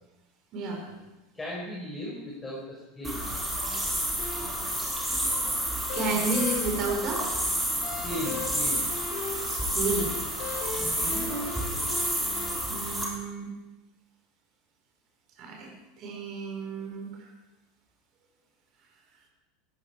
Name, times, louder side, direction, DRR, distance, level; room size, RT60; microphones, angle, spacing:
voice 1, 0.5-0.8 5.9-7.3 9.4-10.1 10.7-11.2 12.7-13.5 15.4-15.7 16.0-17.3, right 3 dB, 45° right, 2 dB, 4.9 m, -32 dB
voice 2, 1.3-3.3 8.0-8.9 11.2-11.6, left 1 dB, 15° left, -4 dB, 5.7 m, -37 dB
sound 1, 3.0-13.1, right 1 dB, 5° right, 5.1 m, -30 dB
sound 2, 4.2-12.5, left 3 dB, 50° left, 7.2 m, -39 dB
18.5 x 15.0 x 4.9 m, 1.0 s
figure-of-eight pair, 80°, 0 cm